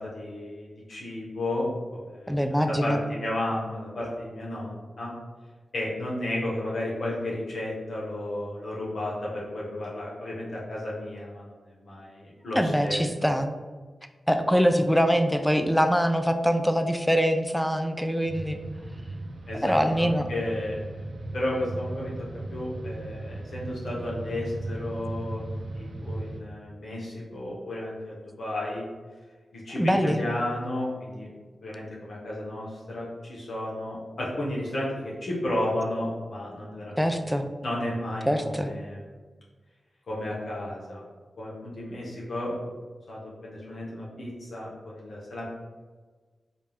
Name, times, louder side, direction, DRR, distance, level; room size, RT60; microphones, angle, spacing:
voice 1, 0.0-5.1 5.7-13.0 19.5-20.8 21.3-25.4 25.7-28.8 29.5-31.3 31.6-39.1 40.1-41.0 41.4-42.7 43.1-45.4, left 1 dB, 75° left, -5 dB, 1.0 m, -33 dB
voice 2, 2.3-3.0 12.6-13.5 14.3-18.6 19.6-20.3 29.8-30.2 37.0-37.5 38.3-38.7, equal, 5° left, 7 dB, 0.4 m, -23 dB
sound 1, 18.3-26.4, right 2 dB, 80° right, 0.4 m, -37 dB
4.2 x 2.4 x 3.4 m, 1.4 s
wide cardioid pair, 80°, 0 cm